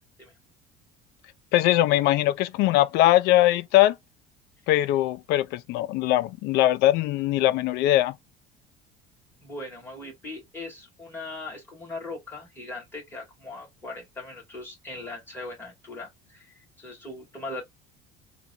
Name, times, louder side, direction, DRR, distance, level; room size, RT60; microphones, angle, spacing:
voice 1, 1.5-4.0 4.7-8.2, left 14 dB, 65° left, 0.4 m, -21 dB
voice 2, 9.4-17.6, left 2 dB, 10° left, 2.3 m, -39 dB
3.9 x 2.3 x 2.7 m
cardioid pair, 150°, 18 cm